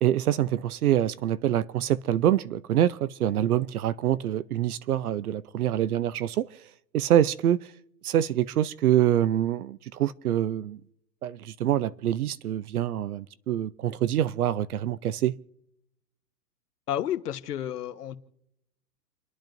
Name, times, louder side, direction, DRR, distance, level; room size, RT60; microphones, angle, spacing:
voice 1, 0.0-6.5 6.9-7.7 8.0-10.8 11.2-15.4, right 11 dB, 60° right, 0.6 m, -25 dB
voice 2, 16.9-18.2, left 11 dB, 65° left, 1.2 m, -31 dB
29.5 x 10.5 x 2.6 m
hypercardioid pair, 165°, 50 cm